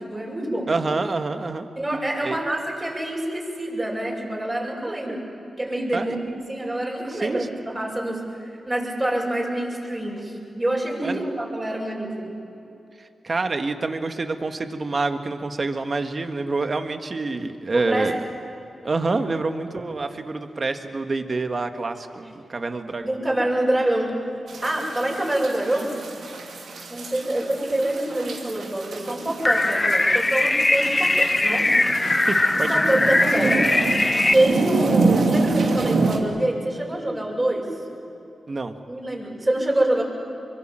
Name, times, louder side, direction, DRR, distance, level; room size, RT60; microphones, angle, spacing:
voice 1, 0.0-0.7 1.8-5.2 5.6-12.4 17.7-18.1 22.2-22.3 23.0-24.1 24.6-25.9 26.9-32.0 32.7-33.7 34.3-37.7 38.9-40.0, right 1 dB, 25° right, -2 dB, 7.5 m, -26 dB
voice 2, 0.7-1.7 2.2-2.4 5.9-6.1 7.1-7.5 11.0-11.2 13.2-18.2 18.8-23.1 32.3-32.8 38.5-38.8, right 3 dB, 50° right, 7 dB, 1.7 m, -27 dB
sound 1, 24.5-36.2, right 3 dB, 85° right, 2.6 m, -27 dB
sound 2, 29.4-34.3, left 2 dB, 25° left, 1.0 m, -20 dB
24.0 x 24.0 x 7.6 m, 2.9 s
cardioid pair, 55°, 0 cm